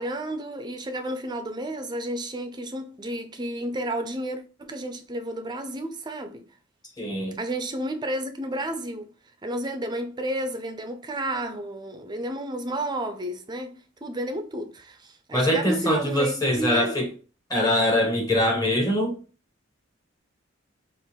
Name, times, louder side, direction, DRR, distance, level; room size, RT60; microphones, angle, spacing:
voice 1, 0.0-6.4 7.4-9.1 9.4-17.0, right 1 dB, 20° right, 0.5 m, -31 dB
voice 2, 7.0-7.4 15.3-17.1 17.5-19.2, left 1 dB, 20° left, 1.3 m, -23 dB
3.7 x 2.5 x 4.4 m
head